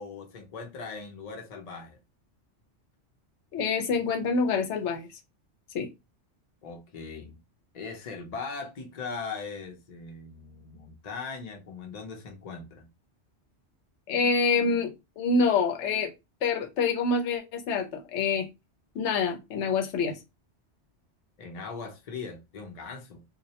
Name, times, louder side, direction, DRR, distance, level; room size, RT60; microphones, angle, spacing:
voice 1, 0.0-2.0 6.6-7.4 7.7-12.9 21.4-23.2, left 4 dB, 45° left, 0.5 m, -39 dB
voice 2, 3.5-5.1 5.7-5.9 14.1-16.1 16.4-18.5 19.0-20.2, left 4 dB, 75° left, 0.9 m, -26 dB
2.4 x 2.0 x 2.7 m
omnidirectional pair, 1.2 m